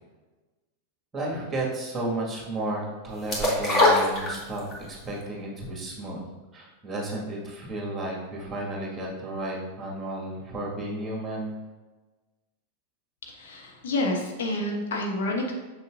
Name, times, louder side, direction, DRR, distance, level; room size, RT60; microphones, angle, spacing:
voice 1, 1.1-6.3 6.5-11.5, right 2 dB, 15° right, -2 dB, 1.9 m, -33 dB
sound 1, 3.3-4.8 5.2-5.3, left 2 dB, 25° left, 1.9 m, -21 dB
voice 2, 13.3-15.5, left 1 dB, 60° left, 1 dB, 0.9 m, -28 dB
6.7 x 6.4 x 2.6 m, 1.2 s
figure-of-eight pair, 90°, 0 cm